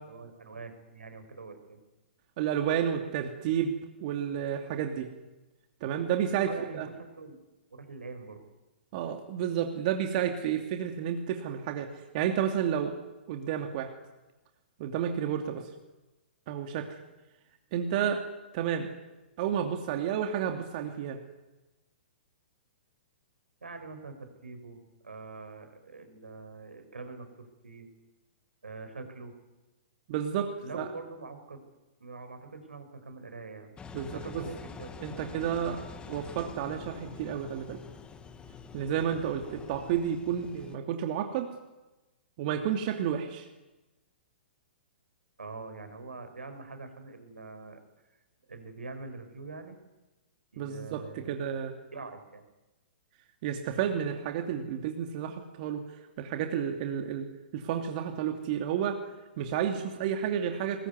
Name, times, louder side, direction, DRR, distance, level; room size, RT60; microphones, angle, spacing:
voice 1, 0.0-1.8 6.5-7.4 7.7-8.4 23.6-27.9 28.6-29.3 30.6-31.7 32.0-33.7 34.1-35.2 35.7-36.1 45.4-47.8 48.5-49.8 50.5-51.4 51.9-52.4, right 3 dB, 85° right, 8 dB, 5.2 m, -44 dB
voice 2, 2.4-3.7 4.0-5.1 5.8-6.9 8.9-13.0 13.3-13.9 14.8-15.7 16.5-16.9 17.7-18.2 18.5-18.9 19.4-21.2 30.1-30.9 33.9-34.4 35.0-35.8 36.1-37.8 38.7-41.5 42.4-43.5 50.6-51.7 53.4-55.8 56.2-57.3 57.5-59.0 59.4-60.9, right 9 dB, 45° right, 4 dB, 2.7 m, -31 dB
Engine, 33.8-40.8, left 6 dB, 15° left, 2.1 m, -46 dB
21.5 x 20.5 x 9.7 m, 1.1 s
hypercardioid pair, 120°, 6 cm